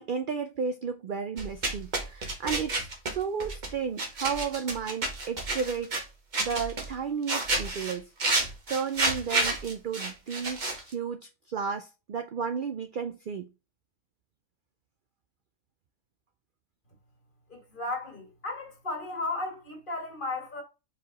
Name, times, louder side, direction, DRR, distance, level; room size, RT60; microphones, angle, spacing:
voice 1, 0.0-5.9 6.4-13.5, right 6 dB, 60° right, 0.5 m, -33 dB
sound 1, 1.4-3.7 4.0-6.0 6.3-7.0 7.3-10.9, right 2 dB, 40° right, 1.2 m, -30 dB
voice 2, 17.5-20.6, left 2 dB, 40° left, 1.8 m, -35 dB
5.1 x 4.7 x 3.9 m
omnidirectional pair, 1.4 m